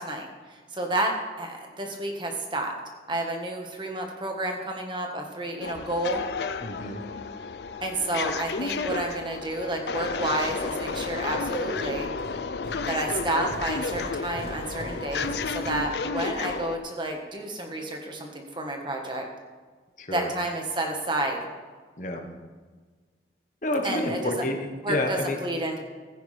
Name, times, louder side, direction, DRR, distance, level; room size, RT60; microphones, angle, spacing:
voice 1, 0.0-2.7 3.1-6.2 7.8-12.1 12.8-19.3 20.1-21.4 23.8-24.4 24.8-25.8, right 1 dB, 25° right, 2 dB, 1.4 m, -30 dB
sound 1, 5.6-16.8, left 4 dB, 70° left, 0.5 m, -32 dB
voice 2, 6.6-7.0 20.0-20.3 22.0-22.3 23.6-25.4, left 1 dB, 45° left, 4 dB, 1.2 m, -29 dB
sound 2, 10.5-16.5, right 1 dB, 70° right, 1.0 m, -43 dB
15.5 x 9.4 x 3.4 m, 1.4 s
head